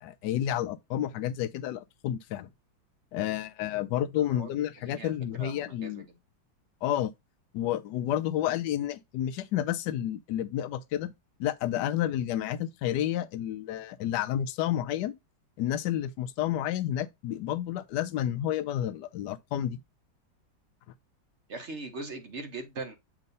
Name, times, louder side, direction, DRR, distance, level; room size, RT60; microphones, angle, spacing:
voice 1, 0.0-2.5 3.1-6.1 6.8-7.1 7.5-11.1 11.4-15.2 15.6-19.8, left 11 dB, 75° left, 1.1 m, -30 dB
voice 2, 5.4-5.9 21.5-23.0, right 3 dB, 45° right, 1.1 m, -39 dB
7.4 x 2.7 x 5.3 m
omnidirectional pair, 2.0 m